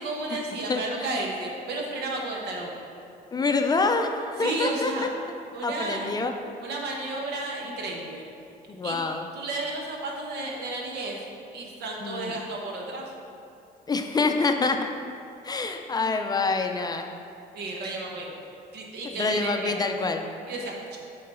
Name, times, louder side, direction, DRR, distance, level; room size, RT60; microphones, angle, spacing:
voice 1, 0.0-2.7 4.4-5.1 5.5-6.1 6.6-8.2 8.8-9.0 9.3-11.2 11.5-13.0 17.5-18.3 18.7-19.7 20.5-21.0, right 2 dB, 80° right, -1 dB, 1.2 m, -32 dB
voice 2, 0.7-1.1 3.3-4.9 5.6-6.3 8.7-9.2 12.0-12.3 13.9-14.9 15.4-17.1 19.0-20.3, left 3 dB, 25° left, 5 dB, 0.4 m, -26 dB
6.6 x 3.8 x 5.5 m, 2.5 s
cardioid pair, 110°, 17 cm